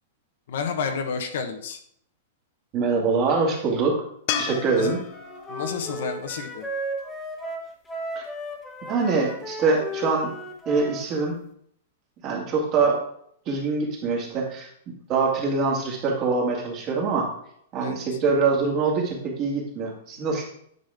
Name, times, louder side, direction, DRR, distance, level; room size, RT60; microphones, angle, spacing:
voice 1, 0.5-1.8 4.8-5.0 5.5-6.7 12.8-12.9 17.8-18.0, left 6 dB, 70° left, 6 dB, 1.2 m, -30 dB
voice 2, 2.7-4.0 4.4-5.0 8.2-8.3 8.9-10.3 10.7-11.4 12.2-13.0 13.5-14.7 15.1-17.3 17.7-20.4, right 4 dB, 35° right, -1 dB, 2.2 m, -24 dB
sound 1, 4.3-7.5 10.8-10.9, left 9 dB, 45° left, 0.7 m, -34 dB
Wind instrument woodwind instrument, 4.7-11.1, equal, 10° left, 1.3 m, -35 dB
9.6 x 5.2 x 3.6 m, 0.68 s
hypercardioid pair, 145°, 0 cm